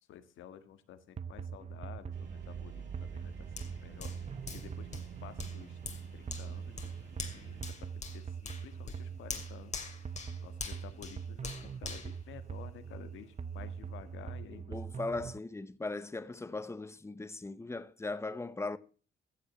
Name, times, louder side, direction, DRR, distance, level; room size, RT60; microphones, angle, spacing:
voice 1, 0.1-4.1 4.5-6.9 7.3-9.8 10.4-15.2, left 9 dB, 80° left, 1.6 m, -52 dB
sound 1, 1.2-15.4, right 6 dB, 35° right, 0.8 m, -43 dB
sound 2, 2.1-7.6, right 6 dB, 65° right, 4.5 m, -49 dB
Hands, 3.6-13.1 13.5-13.7, left 4 dB, 35° left, 2.5 m, -45 dB
voice 2, 14.7-18.8, left 3 dB, 15° left, 0.9 m, -38 dB
15.0 x 7.3 x 6.0 m
cardioid pair, 90°, 20 cm